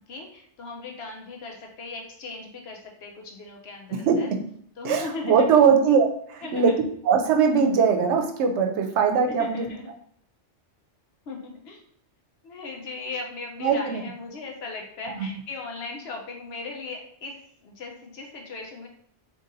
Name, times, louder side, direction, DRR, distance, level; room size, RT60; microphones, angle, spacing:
voice 1, 0.1-4.3 4.8-5.5 6.4-6.8 9.4-9.9 11.3-11.8 12.4-18.9, left 3 dB, 70° left, 1 dB, 0.9 m, -38 dB
voice 2, 4.8-9.7 13.6-14.0 15.1-15.3, right 6 dB, 80° right, 4 dB, 0.9 m, -21 dB
3.8 x 2.8 x 2.6 m, 0.67 s
omnidirectional pair, 1.1 m